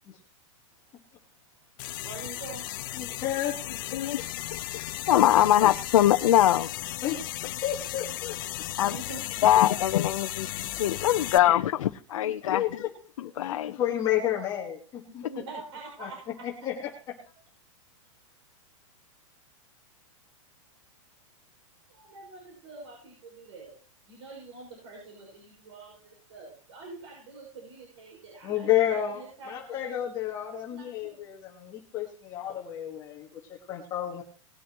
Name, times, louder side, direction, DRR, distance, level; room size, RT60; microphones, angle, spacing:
voice 1, 1.4-2.7 8.7-9.6 10.6-10.8 15.1-16.5 21.9-23.8 24.1-29.9 30.7-31.2, right 3 dB, 65° right, -2 dB, 6.0 m, -45 dB
sound 1, 1.8-11.4, left 15 dB, 40° left, 0.8 m, -36 dB
voice 2, 2.9-3.6 3.9-4.0 7.0-7.2 7.6-8.3 12.5-12.7 13.2-15.3 16.0-16.1 16.4-17.1 28.4-34.2, left 11 dB, 20° left, -1 dB, 1.5 m, -31 dB
voice 3, 5.1-6.7 8.8-9.0 9.4-12.9 13.2-13.8, left 12 dB, 75° left, 6 dB, 0.8 m, -23 dB
19.5 x 9.8 x 3.0 m, 0.37 s
supercardioid pair, 170°, 17 cm